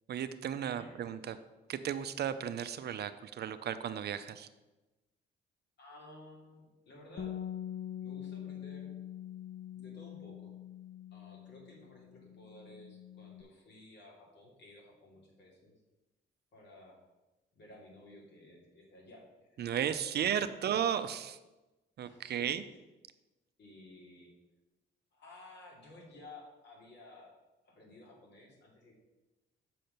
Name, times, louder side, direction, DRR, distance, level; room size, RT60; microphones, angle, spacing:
voice 1, 0.1-1.4 1.7-4.5 19.6-21.4 22.0-22.6, right 9 dB, 55° right, 11 dB, 0.5 m, -34 dB
voice 2, 0.6-1.0 5.8-7.4 8.0-8.9 9.7-10.5 11.1-15.7 16.5-17.0 17.5-19.7 22.0-22.6 23.6-24.3 25.1-27.3 27.6-28.9, left 2 dB, 60° left, -2 dB, 2.7 m, -55 dB
Bass guitar, 7.2-13.4, left 10 dB, 40° left, 0.6 m, -44 dB
6.5 x 4.3 x 6.6 m, 1.1 s
cardioid pair, 90°, 20 cm